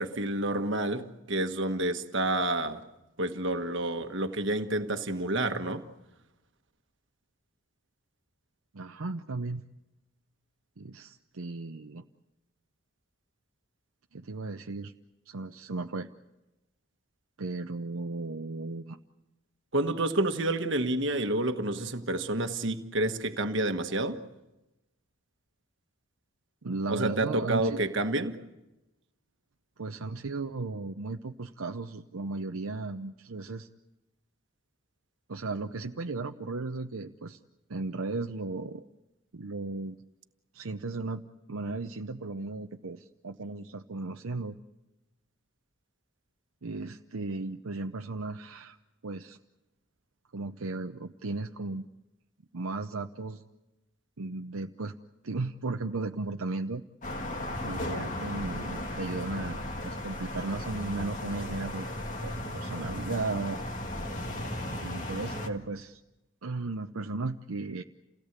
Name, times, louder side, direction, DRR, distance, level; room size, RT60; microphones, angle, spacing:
voice 1, 0.0-2.8 3.2-5.8 19.7-24.2 26.9-28.4, right 2 dB, 55° right, 1.5 m, -29 dB
voice 2, 8.7-9.6 10.8-12.0 14.1-14.9 15.3-16.1 17.4-19.0 26.6-27.8 29.8-33.7 35.3-37.4 37.7-38.8 39.3-40.0 40.5-44.6 46.6-48.8 49.0-49.4 50.3-51.9 52.5-53.4 54.2-55.0 55.2-56.8 57.6-61.9 62.2-63.6 64.8-66.0 66.4-67.8, right 3 dB, 75° right, 0.8 m, -35 dB
sound 1, 57.0-65.5, left 1 dB, 35° left, 1.9 m, -35 dB
29.0 x 17.5 x 8.2 m
head